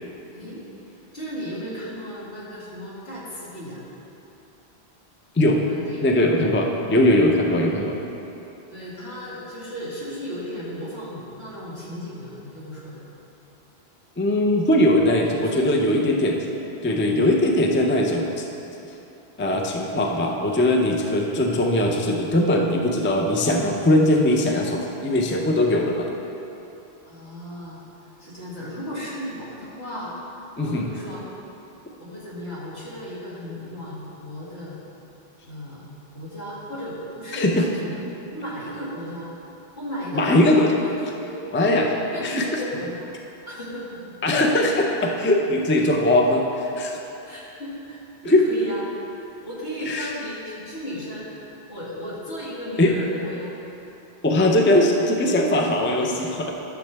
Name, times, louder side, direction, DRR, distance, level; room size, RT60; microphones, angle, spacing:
voice 1, 0.3-3.8 5.7-6.1 8.7-13.0 15.3-16.2 27.1-27.8 28.2-30.1 30.6-31.3 32.0-34.8 35.5-39.3 39.8-41.4 42.1-43.2 43.5-44.0 44.5-44.6 47.2-48.8 49.4-51.3 51.7-53.5 54.5-54.6, equal, 75° left, -8 dB, 2.4 m, -35 dB
voice 2, 6.0-8.0 14.2-16.4 16.8-18.5 19.4-26.1 30.6-30.8 37.3-37.7 40.1-40.7 41.5-42.0 42.2-42.6 44.2-47.0 48.3-48.4 49.8-50.1 52.8-52.9 54.2-56.5, left 1 dB, 15° left, 1 dB, 0.4 m, -20 dB
12.0 x 6.6 x 3.4 m, 3.0 s
omnidirectional pair, 1.1 m